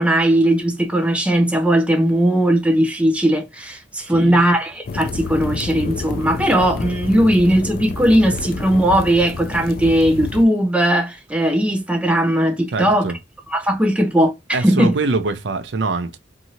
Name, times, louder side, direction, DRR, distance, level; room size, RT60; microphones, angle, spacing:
voice 1, 0.0-13.1 13.5-14.9, right 1 dB, 5° right, 0.5 m, -18 dB
voice 2, 4.1-4.4 12.7-13.2 14.5-16.2, right 3 dB, 70° right, 0.5 m, -23 dB
sound 1, 4.8-10.4, left 4 dB, 50° left, 0.3 m, -29 dB
2.7 x 2.6 x 2.8 m
head